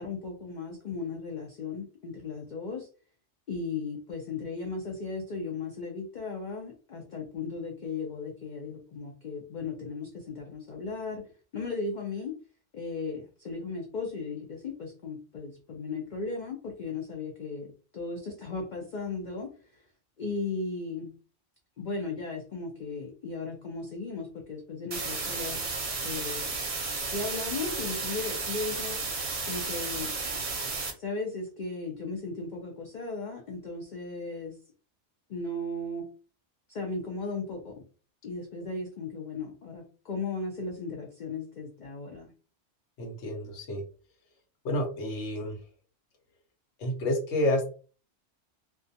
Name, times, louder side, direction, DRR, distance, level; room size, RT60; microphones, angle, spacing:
voice 1, 0.0-2.9 3.5-11.2 11.5-12.3 12.7-17.7 17.9-19.8 20.2-21.1 21.8-25.6 26.0-26.5 27.0-29.0 29.5-30.1 30.9-34.5 35.3-36.1 36.7-37.8 38.2-42.3, left 3 dB, 55° left, 1 dB, 0.5 m, -36 dB
sound 1, 24.9-30.9, right 4 dB, 50° right, 0.7 m, -33 dB
voice 2, 43.0-43.8 44.6-45.6 46.8-47.7, left 1 dB, 75° left, 1 dB, 1.0 m, -29 dB
2.3 x 2.2 x 2.6 m, 0.37 s
omnidirectional pair, 1.2 m